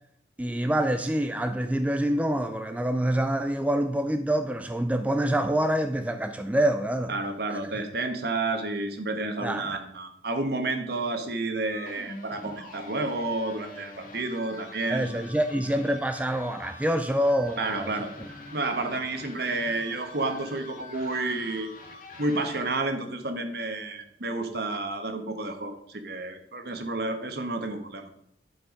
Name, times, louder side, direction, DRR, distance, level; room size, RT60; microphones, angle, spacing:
voice 1, 0.4-7.1 7.5-7.6 9.4-9.7 14.9-17.9, right 1 dB, 10° right, 0.4 m, -26 dB
voice 2, 7.1-15.2 17.6-18.1 18.5-21.7 22.2-28.1, right 2 dB, 60° right, 1.2 m, -30 dB
sound 1, 11.7-22.6, left 2 dB, 50° left, 2.1 m, -45 dB
11.5 x 4.6 x 5.1 m
head